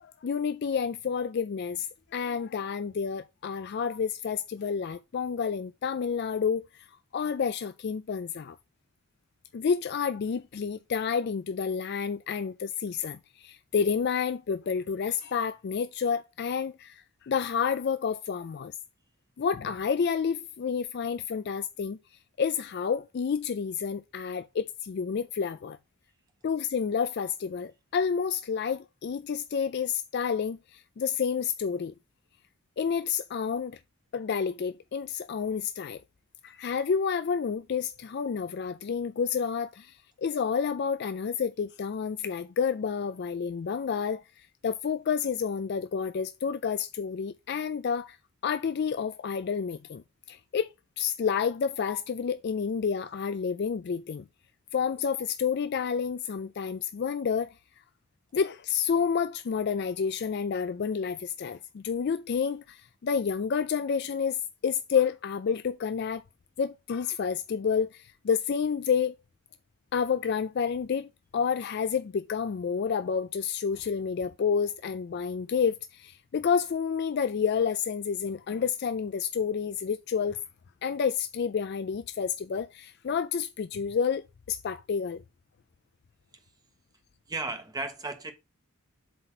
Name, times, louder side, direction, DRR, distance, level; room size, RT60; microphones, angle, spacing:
voice 1, 0.0-6.9 7.1-8.6 9.5-18.7 19.4-22.0 22.4-25.8 26.4-31.9 32.8-33.8 34.1-36.0 36.4-48.2 48.4-50.0 50.3-50.7 51.0-54.2 54.7-57.5 58.3-66.2 66.6-69.1 69.9-80.4 80.8-85.2, left 6 dB, 50° left, 0.3 m, -29 dB
voice 2, 87.3-88.3, right 3 dB, 20° right, 1.1 m, -34 dB
7.7 x 4.1 x 4.5 m
head